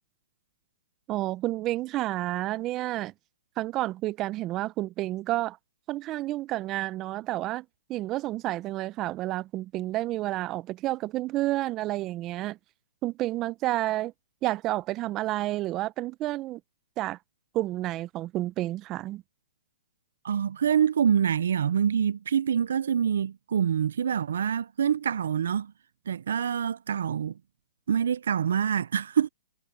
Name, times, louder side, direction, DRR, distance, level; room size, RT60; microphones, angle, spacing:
voice 1, 1.1-3.1 3.6-5.6 5.9-12.6 13.0-14.1 14.4-16.6 17.0-17.2 17.5-19.2, right 16 dB, 30° right, 0.6 m, -30 dB
voice 2, 20.2-25.7 26.1-27.3 27.9-29.3, right 8 dB, 75° right, 0.6 m, -26 dB
hypercardioid pair, 135°, 0 cm